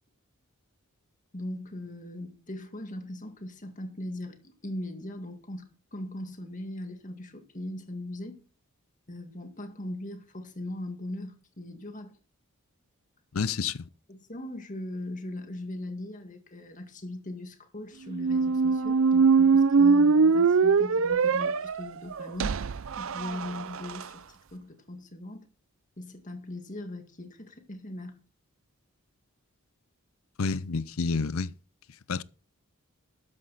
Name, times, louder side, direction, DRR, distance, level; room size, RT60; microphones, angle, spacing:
voice 1, 1.3-8.4 9.1-12.2 14.1-22.6 23.0-24.2 24.5-25.5 26.0-28.2, left 1 dB, 35° left, 1.9 m, -39 dB
voice 2, 13.3-13.9 30.4-31.5 32.1-32.2, left 4 dB, 70° left, 0.6 m, -29 dB
sound 1, 18.1-24.0, right 5 dB, 65° right, 0.5 m, -22 dB
12.5 x 9.1 x 4.1 m
head